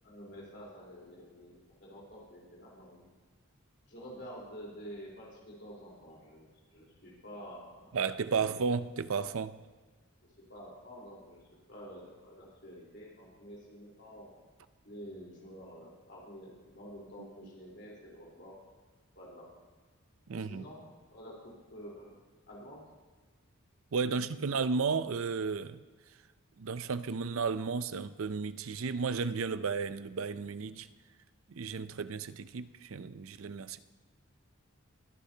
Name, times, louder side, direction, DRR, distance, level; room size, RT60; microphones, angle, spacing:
voice 1, 0.0-3.0 3.9-7.9 8.3-8.5 10.4-11.4 11.7-14.3 14.8-18.6 19.2-19.5 20.3-20.8 21.1-22.2 22.5-22.8 24.1-24.5, equal, 55° left, 4.0 m, -49 dB
voice 2, 7.9-9.6 17.2-17.3 20.3-20.6 23.9-25.8 26.6-30.9 31.5-33.8, right 5 dB, 75° right, 0.5 m, -33 dB
22.0 x 10.0 x 2.9 m
head